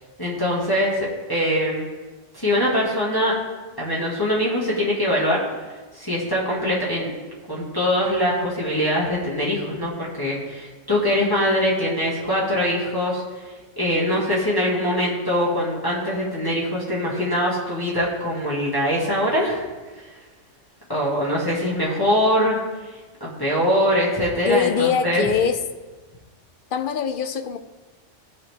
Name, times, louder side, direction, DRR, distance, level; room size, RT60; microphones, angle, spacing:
voice 1, 0.2-1.9 2.3-3.4 3.8-5.4 5.9-7.1 7.5-19.7 20.0-20.1 20.9-25.2, equal, 20° left, -7 dB, 1.9 m, -23 dB
voice 2, 24.5-25.6 26.7-27.6, left 6 dB, 60° left, 8 dB, 0.6 m, -22 dB
15.5 x 5.7 x 3.5 m, 1.3 s
omnidirectional pair, 1.3 m